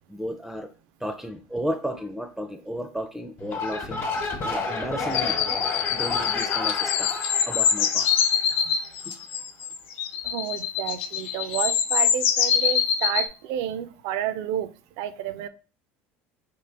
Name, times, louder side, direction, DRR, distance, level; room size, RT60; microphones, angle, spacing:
voice 1, 0.1-0.7 1.0-4.1 4.4-5.4 5.9-8.2 9.0-9.1, equal, 5° right, 7 dB, 0.4 m, -33 dB
sound 1, 3.4-8.7, left 3 dB, 45° left, 1.1 m, -31 dB
sound 2, 5.1-13.3, left 8 dB, 80° left, 0.4 m, -24 dB
voice 2, 10.2-15.5, right 11 dB, 70° right, 13 dB, 0.4 m, -31 dB
3.8 x 2.4 x 3.4 m, 0.35 s
hypercardioid pair, 85°, 6 cm